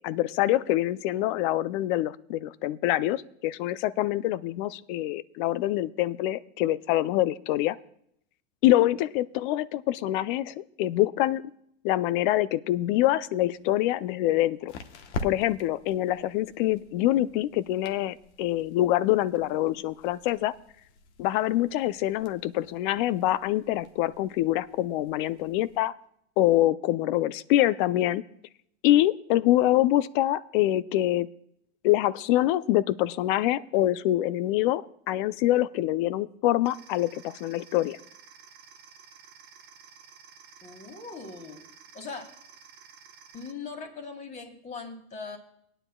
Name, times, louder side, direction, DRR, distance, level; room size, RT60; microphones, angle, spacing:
voice 1, 0.0-7.8 8.6-11.4 11.8-14.7 15.2-20.5 21.2-25.9 26.4-28.2 28.8-31.3 31.8-38.0, left 14 dB, 50° left, 17 dB, 0.5 m, -25 dB
sound 1, 13.4-25.8, left 3 dB, 75° left, 1.2 m, -45 dB
sound 2, 36.7-43.5, right 6 dB, 30° right, 0.9 m, -52 dB
voice 2, 40.6-41.6 41.9-42.3 43.3-45.4, left 4 dB, 20° left, 4 dB, 1.9 m, -40 dB
20.0 x 9.9 x 2.3 m, 0.73 s
supercardioid pair, 135°, 34 cm